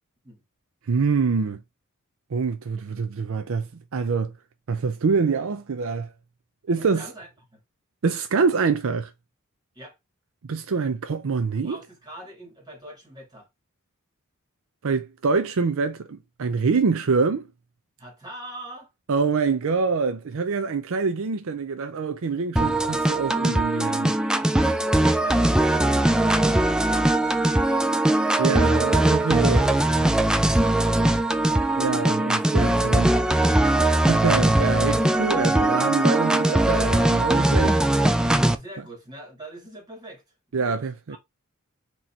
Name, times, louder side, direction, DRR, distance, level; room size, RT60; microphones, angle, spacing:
voice 1, 0.9-1.6 2.3-4.3 4.7-6.1 6.7-7.1 8.0-9.1 10.4-11.8 14.8-17.5 19.1-24.1 28.4-29.7 31.8-33.1 34.0-37.8 40.5-41.2, right 4 dB, 65° right, 0.5 m, -25 dB
voice 2, 6.8-7.6 9.7-10.0 11.6-13.5 18.0-18.9 24.3-28.0 29.5-31.5 32.7-33.7 38.5-40.2 40.6-41.2, right 1 dB, 20° right, 2.2 m, -43 dB
sound 1, 22.6-38.6, right 1 dB, 5° right, 0.3 m, -20 dB
4.0 x 3.0 x 4.3 m
head